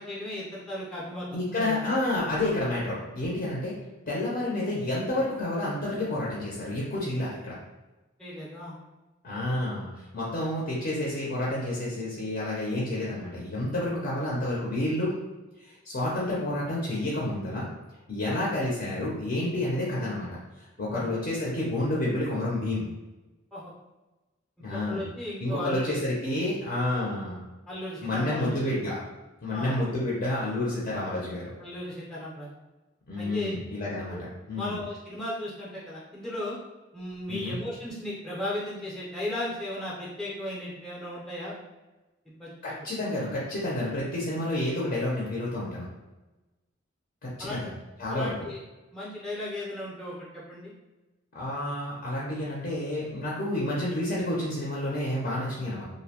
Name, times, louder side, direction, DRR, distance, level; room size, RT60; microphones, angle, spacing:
voice 1, 0.0-1.8 8.2-8.8 9.5-9.6 18.3-18.4 20.9-21.1 23.5-23.7 24.7-25.9 27.7-28.6 29.5-29.8 31.6-32.5 33.2-33.5 34.1-34.2 34.5-36.6 36.9-41.6 42.3-42.5 47.4-47.6 48.1-48.6 48.9-50.7, left 1 dB, 5° left, -6 dB, 0.5 m, -36 dB
voice 2, 1.3-3.8 4.1-7.6 9.2-15.2 15.6-17.7 18.1-20.4 20.8-22.9 24.6-25.0 25.4-27.5 28.0-29.0 29.4-31.5 33.1-34.2 34.5-34.8 37.3-37.6 42.6-45.9 47.2-47.7 48.0-48.5 51.3-55.8, left 1 dB, 50° left, -5 dB, 0.5 m, -29 dB
2.6 x 2.1 x 2.8 m, 1.1 s
head